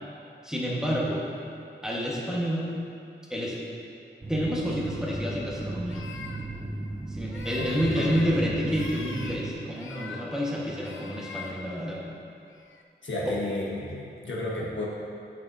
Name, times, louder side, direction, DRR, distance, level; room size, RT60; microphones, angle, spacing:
voice 1, 0.4-1.3 1.8-2.8 3.3-3.6 4.3-6.0 7.1-12.0 13.3-13.4, equal, 5° right, -5 dB, 1.4 m, -29 dB
sound 1, 4.2-9.5, right 2 dB, 25° right, 0.7 m, -36 dB
sound 2, 5.9-6.4 7.3-8.3 8.6-9.4 9.7-10.4 10.8-11.6 12.5-12.8 13.2-13.7, left 5 dB, 90° left, 0.5 m, -43 dB
voice 2, 7.5-8.4 13.0-14.9, left 1 dB, 70° left, -5 dB, 1.3 m, -32 dB
8.0 x 7.2 x 2.7 m, 2.5 s
cardioid pair, 55°, 20 cm